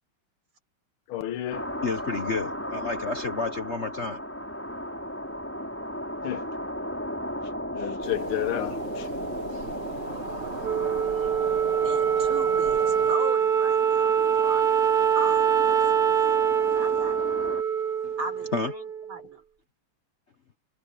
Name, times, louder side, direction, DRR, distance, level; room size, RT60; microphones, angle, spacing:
voice 1, 1.1-1.6 6.2-6.5 7.7-9.1, left 13 dB, 85° left, 1.7 m, -31 dB
sound 1, 1.5-17.6, equal, 5° left, 4.5 m, -36 dB
voice 2, 1.8-4.2 18.0-18.1 18.5-18.7, left 4 dB, 45° left, 0.9 m, -30 dB
sound 2, 8.0-13.1, right 6 dB, 55° right, 2.3 m, -39 dB
Wind instrument woodwind instrument, 10.6-19.2, right 8 dB, 40° right, 0.7 m, -24 dB
voice 3, 11.8-14.7 15.2-17.2 18.2-18.8 19.1-19.4, right 2 dB, 75° right, 6.1 m, -37 dB
omnidirectional pair, 2.3 m